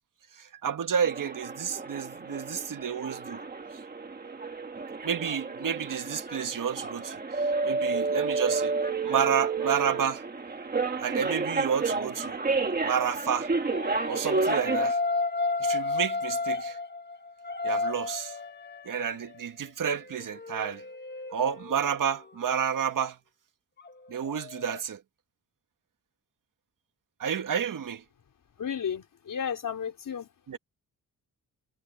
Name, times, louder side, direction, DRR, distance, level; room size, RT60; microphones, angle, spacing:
voice 1, 0.4-3.4 5.0-8.7 9.0-10.2 11.0-12.4 12.8-13.5 14.1-15.0 15.6-16.8 17.6-18.4 18.9-20.8 21.3-23.2 24.1-25.0 27.2-28.0 30.5-30.6, right 7 dB, 70° right, 1.8 m, -30 dB
sound 1, 1.0-14.9, right 4 dB, 25° right, 1.6 m, -31 dB
sound 2, 13.7-19.4 19.9-22.3 23.8-24.8, left 3 dB, 30° left, 1.4 m, -32 dB
voice 2, 28.6-30.3, left 8 dB, 70° left, 4.7 m, -33 dB
wide cardioid pair, 150°, 34 cm